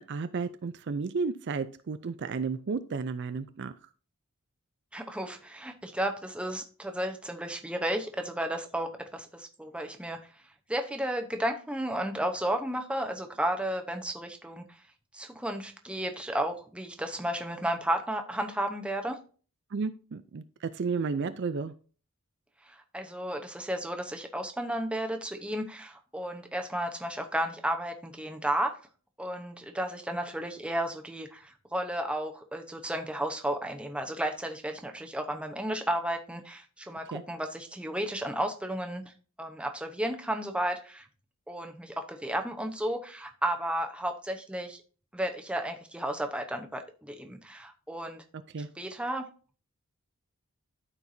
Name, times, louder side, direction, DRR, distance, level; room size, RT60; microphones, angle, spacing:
voice 1, 0.0-3.7 19.7-21.7 37.1-37.2 48.5-48.7, right 4 dB, 50° right, 12 dB, 0.4 m, -32 dB
voice 2, 4.9-10.2 10.7-14.8 15.1-19.2 22.6-28.8 29.2-39.1 39.4-41.1 41.5-44.8 45.1-48.2 48.7-49.3, right 1 dB, 5° right, 5 dB, 0.8 m, -33 dB
13.5 x 4.6 x 2.7 m, 0.38 s
head